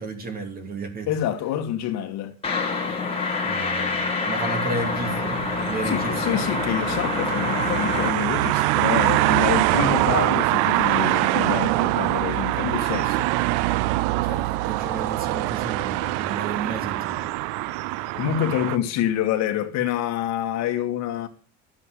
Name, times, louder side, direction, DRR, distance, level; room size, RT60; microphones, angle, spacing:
voice 1, 0.0-1.1 3.4-6.4 14.2-17.3, right 3 dB, 25° right, 2.9 m, -33 dB
voice 2, 1.1-2.3 5.8-13.3 18.1-21.3, left 10 dB, 45° left, 2.1 m, -27 dB
sound 1, 2.4-8.1, left 4 dB, 15° left, 2.2 m, -26 dB
sound 2, 4.8-18.8, right 18 dB, 75° right, 0.7 m, -24 dB
14.0 x 7.8 x 8.4 m
cardioid pair, 175°, 36 cm